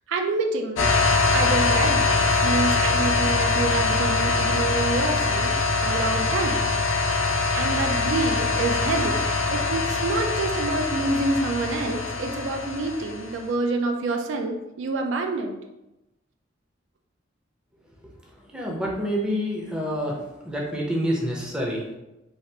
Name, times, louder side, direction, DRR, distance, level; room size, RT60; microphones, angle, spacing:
voice 1, 0.1-0.9 1.3-6.6 7.5-9.2 9.5-15.6, right 3 dB, 75° right, 5 dB, 0.3 m, -27 dB
sound 1, 0.8-13.4, left 3 dB, 90° left, 0.4 m, -23 dB
voice 2, 18.5-20.2 20.4-21.8, equal, 5° right, -3 dB, 0.5 m, -27 dB
3.2 x 2.4 x 2.7 m, 0.97 s
head